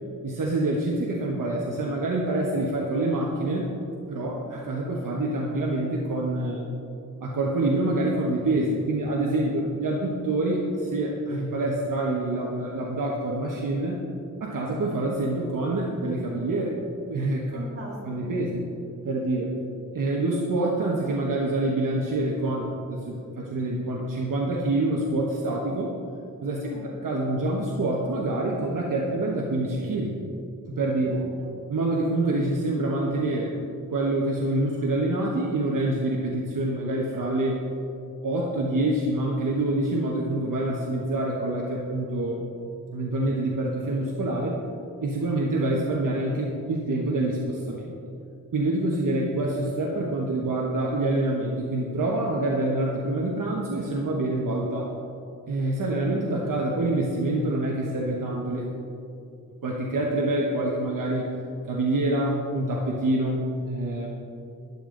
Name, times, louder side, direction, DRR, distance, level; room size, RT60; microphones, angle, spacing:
voice 1, 0.2-3.7 4.1-6.6 7.2-14.0 14.4-16.8 17.1-17.6 18.0-18.6 19.0-19.5 19.9-25.9 26.4-30.2 30.7-31.2 31.7-33.5 33.9-37.6 38.2-42.4 42.9-44.5 45.0-47.9 48.5-54.9 55.5-58.7 59.6-61.3 61.7-64.1, right 2 dB, 70° right, -2 dB, 1.2 m, -26 dB
voice 2, 4.2-4.5 9.5-9.7 17.5-17.9 18.2-18.3 26.6-26.9 31.0-31.5, right 1 dB, 40° right, -5 dB, 2.9 m, -41 dB
12.5 x 11.0 x 3.9 m, 2.6 s
wide cardioid pair, 180°, 33 cm